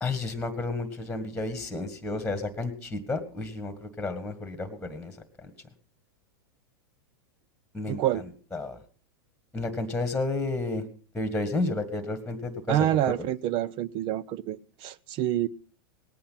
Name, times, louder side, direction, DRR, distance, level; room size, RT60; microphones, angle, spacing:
voice 1, 0.0-5.5 7.7-8.0 8.5-8.8 9.5-10.9 11.1-13.1, left 2 dB, 5° left, 1.9 m, -31 dB
voice 2, 7.8-8.2 12.7-15.5, right 12 dB, 45° right, 0.7 m, -27 dB
19.0 x 8.6 x 5.8 m
hypercardioid pair, 120°, 12 cm